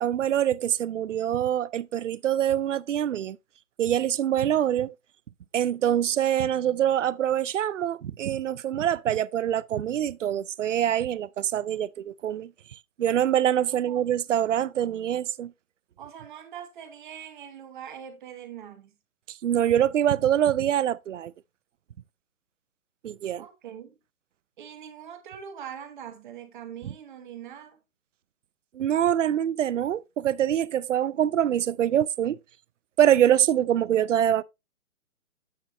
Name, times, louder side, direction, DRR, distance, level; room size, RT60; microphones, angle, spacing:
voice 1, 0.0-3.4 3.8-4.9 5.5-12.5 13.0-15.5 19.4-21.3 23.0-23.4 28.7-32.4 33.0-34.4, right 10 dB, 60° right, 0.5 m, -24 dB
voice 2, 13.7-14.0 16.0-18.9 23.3-24.0 24.6-27.8, right 9 dB, 35° right, 1.3 m, -42 dB
8.4 x 8.0 x 2.6 m
figure-of-eight pair, 140°, 43 cm